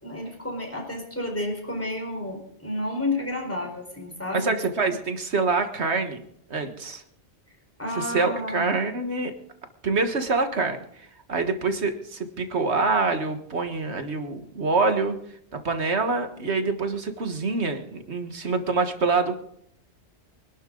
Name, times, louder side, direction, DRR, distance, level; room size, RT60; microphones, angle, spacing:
voice 1, 0.0-4.5 7.8-8.7, left 1 dB, 10° left, 1 dB, 4.4 m, -31 dB
voice 2, 4.3-6.2 6.5-7.0 7.9-9.3 9.8-10.8 11.3-15.2 15.5-19.4, right 3 dB, 65° right, 7 dB, 1.8 m, -25 dB
24.5 x 12.0 x 3.9 m, 0.70 s
omnidirectional pair, 1.2 m